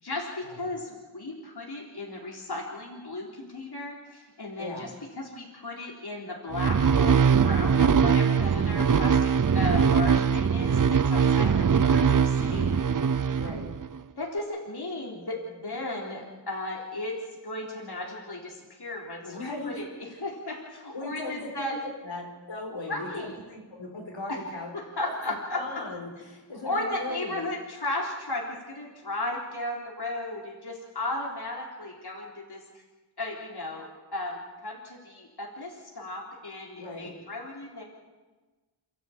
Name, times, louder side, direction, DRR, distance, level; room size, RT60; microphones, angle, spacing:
voice 1, 0.0-12.8 14.2-17.2 17.4-19.4 19.6-21.8 22.9-23.3 24.3-24.4 24.7-25.6 26.6-32.8 33.2-37.8, left 2 dB, 60° left, -2 dB, 4.0 m, -35 dB
voice 2, 4.6-4.9 11.4-11.6 12.5-12.8 13.4-13.7 19.2-19.8 20.1-20.2 20.9-21.7 22.0-24.7 25.0-25.1 25.6-27.4 36.8-37.2, left 2 dB, 90° left, 0 dB, 5.2 m, -38 dB
sound 1, 6.5-14.0, right 6 dB, 45° right, 0.7 m, -22 dB
28.5 x 13.0 x 8.8 m, 1.3 s
wide cardioid pair, 70°, 44 cm